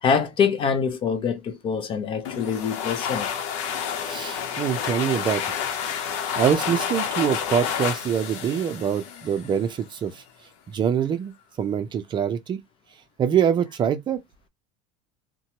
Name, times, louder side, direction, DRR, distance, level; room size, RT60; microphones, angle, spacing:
voice 1, 0.0-3.3, left 6 dB, 30° left, 0.5 m, -24 dB
sound 1, 2.2-9.7, left 8 dB, 80° left, 0.8 m, -29 dB
voice 2, 4.1-5.5 6.4-10.2 10.7-12.6 13.2-14.2, right 8 dB, 30° right, 0.5 m, -24 dB
2.7 x 2.2 x 2.9 m
supercardioid pair, 140°, 17 cm